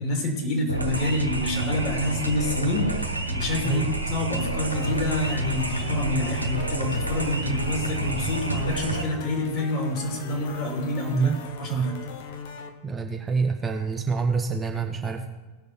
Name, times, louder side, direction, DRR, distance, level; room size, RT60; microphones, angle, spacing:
voice 1, 0.0-11.3 11.6-11.9, left 1 dB, 35° left, 1 dB, 3.0 m, -27 dB
sound 1, 0.7-9.0, right 2 dB, 85° right, 1.2 m, -29 dB
sound 2, 4.7-12.7, left 7 dB, 55° left, 1.1 m, -39 dB
voice 2, 12.8-15.3, right 4 dB, 15° right, 3 dB, 0.8 m, -26 dB
17.5 x 6.5 x 4.4 m, 1.2 s
figure-of-eight pair, 90°, 0 cm